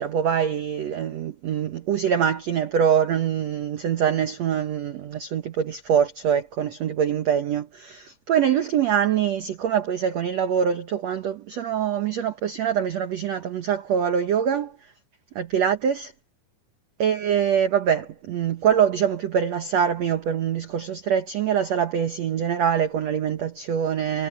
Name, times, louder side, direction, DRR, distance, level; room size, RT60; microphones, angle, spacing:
voice 1, 0.0-14.8 15.3-16.1 17.0-24.3, right 8 dB, 90° right, 1.4 m, -24 dB
omnidirectional pair, 4.8 m